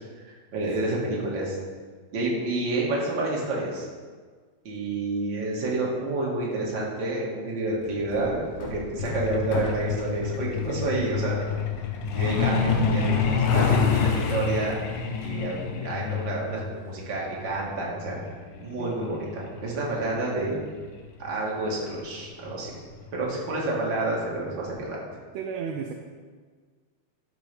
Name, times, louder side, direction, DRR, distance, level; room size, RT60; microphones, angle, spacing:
voice 1, 0.0-1.6 2.1-3.9 4.6-11.5 12.1-14.8 15.2-18.2 18.6-20.6 21.2-22.7 23.1-25.0, right 2 dB, 45° right, -4 dB, 2.1 m, -29 dB
Hammer, 7.8-15.6, left 2 dB, 65° left, 1.7 m, -39 dB
Truck, 9.0-21.3 22.5-22.7 23.1-23.3 23.6-23.9 24.2-24.3 24.8-24.9, left 6 dB, 80° left, 1.2 m, -27 dB
voice 2, 25.3-25.9, right 6 dB, 75° right, 3 dB, 1.7 m, -33 dB
11.5 x 6.3 x 3.4 m, 1.5 s
omnidirectional pair, 3.4 m